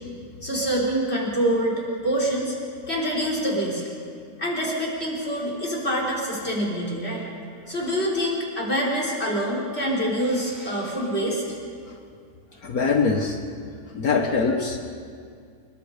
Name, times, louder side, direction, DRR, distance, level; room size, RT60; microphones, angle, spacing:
voice 1, 0.4-2.6 2.9-3.9 4.4-7.3 7.7-11.4, equal, 35° left, -3 dB, 5.0 m, -25 dB
voice 2, 12.6-13.4 13.9-14.8, left 4 dB, 60° left, 3 dB, 1.7 m, -22 dB
29.0 x 21.0 x 5.1 m, 2.2 s
omnidirectional pair, 1.8 m